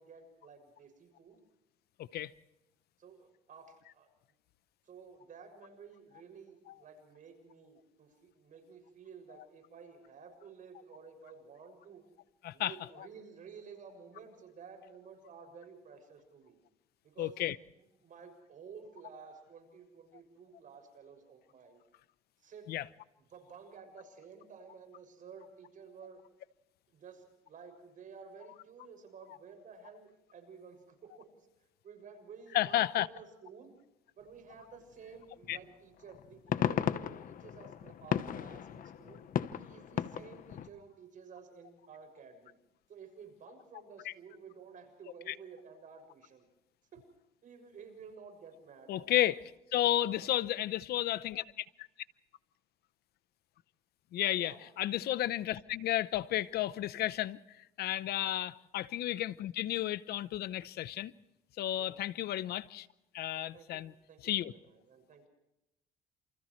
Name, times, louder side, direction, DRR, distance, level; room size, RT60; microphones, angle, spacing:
voice 1, 0.0-1.4 3.0-4.1 4.8-12.0 12.5-16.6 17.0-17.4 17.8-21.8 22.4-22.7 23.3-26.2 26.9-31.5 31.8-33.7 34.2-39.2 39.5-42.6 42.9-46.5 46.9-47.0 47.4-49.3 50.0-50.3 54.4-54.6 58.2-58.4 61.7-62.0 63.3-63.8 64.1-65.3, right 5 dB, 50° right, 6.7 m, -53 dB
voice 2, 2.0-2.3 12.4-12.7 17.2-17.6 22.7-22.8 32.5-33.1 35.5-35.6 45.3-45.4 48.9-49.4 49.7-51.6 54.1-57.4 57.8-61.1 61.6-62.9 63.1-63.9 64.2-64.5, left 13 dB, 70° left, 0.8 m, -32 dB
sound 1, 35.4-35.6 36.1-40.7, left 9 dB, 55° left, 1.1 m, -35 dB
29.0 x 28.5 x 3.2 m
cardioid pair, 110°, 17 cm